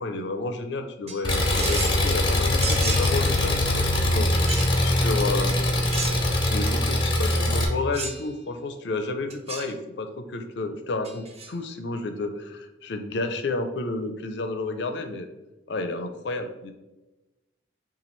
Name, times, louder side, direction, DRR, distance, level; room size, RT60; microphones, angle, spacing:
voice 1, 0.0-5.6 6.4-15.3 15.7-16.7, left 2 dB, 60° left, 7 dB, 0.5 m, -31 dB
sound 1, 1.1-2.0 2.6-3.2 4.5-4.7 5.9-6.4 7.9-8.3 9.3-9.7 11.0-11.5, right 4 dB, 35° right, 0.4 m, -33 dB
Engine, 1.2-7.6, left 1 dB, 25° left, 0.7 m, -22 dB
5.7 x 2.4 x 3.1 m, 1.0 s
head